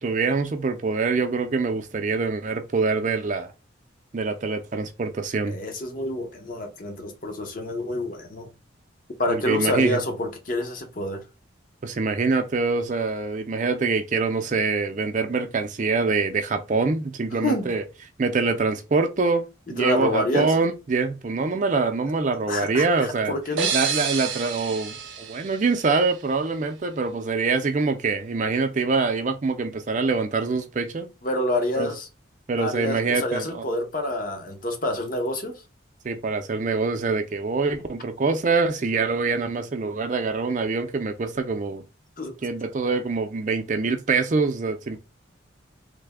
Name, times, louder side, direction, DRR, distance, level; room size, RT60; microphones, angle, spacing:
voice 1, 0.0-3.5 4.1-5.6 9.3-10.0 11.8-17.8 18.2-19.4 19.7-23.3 23.7-31.1 31.8-31.9 32.5-33.6 36.0-41.8 42.4-45.0, right 4 dB, 40° right, 0.4 m, -24 dB
voice 2, 5.5-8.5 9.2-11.2 17.4-17.7 19.8-20.5 22.5-23.7 31.2-32.1 32.6-35.6 42.2-42.3, left 1 dB, 45° left, 0.7 m, -27 dB
sound 1, 23.6-26.3, right 6 dB, 80° right, 0.6 m, -29 dB
3.3 x 2.1 x 3.4 m
head